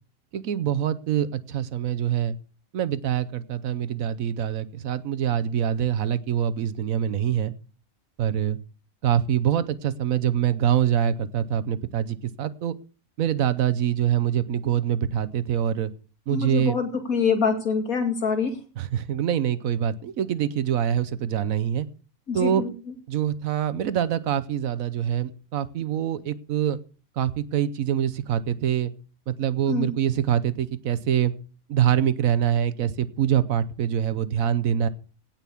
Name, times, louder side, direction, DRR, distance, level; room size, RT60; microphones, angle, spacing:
voice 1, 0.3-2.4 2.7-7.5 8.2-8.6 9.0-12.8 13.2-15.9 16.3-16.8 18.8-21.9 22.3-22.7 23.1-26.8 27.2-28.9 29.3-31.3 31.7-34.9, right 10 dB, 70° right, 14 dB, 1.2 m, -25 dB
voice 2, 16.3-18.5 22.3-22.7 29.7-29.9, left 5 dB, 75° left, 4 dB, 2.9 m, -25 dB
17.5 x 5.9 x 7.0 m, 0.39 s
omnidirectional pair, 1.5 m